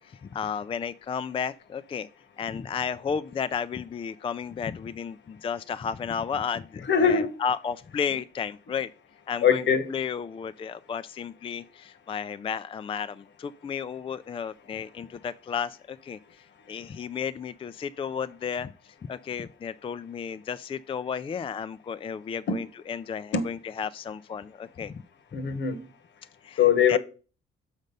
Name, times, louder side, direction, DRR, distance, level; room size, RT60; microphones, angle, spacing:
voice 1, 0.0-2.1 2.4-8.9 9.3-9.6 9.9-25.0 26.4-26.6 26.9-27.0, left 7 dB, 25° left, 0.3 m, -33 dB
voice 2, 6.9-7.3 9.4-9.9 22.5-22.6 23.3-23.5 25.3-25.9 26.6-27.0, left 7 dB, 65° left, 1.2 m, -22 dB
6.5 x 5.2 x 5.3 m
cardioid pair, 90°, 20 cm